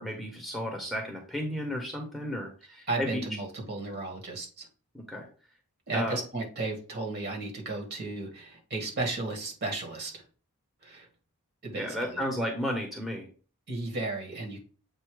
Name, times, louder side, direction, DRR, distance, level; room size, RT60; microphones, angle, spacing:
voice 1, 0.0-3.2 4.9-5.3 5.9-6.2 11.8-13.3, equal, ahead, 0 dB, 1.1 m, -33 dB
voice 2, 2.9-4.7 5.9-10.2 10.8-11.1 11.6-12.3 13.7-14.6, right 2 dB, 45° right, 1 dB, 1.9 m, -34 dB
7.8 x 2.8 x 4.9 m, 0.38 s
head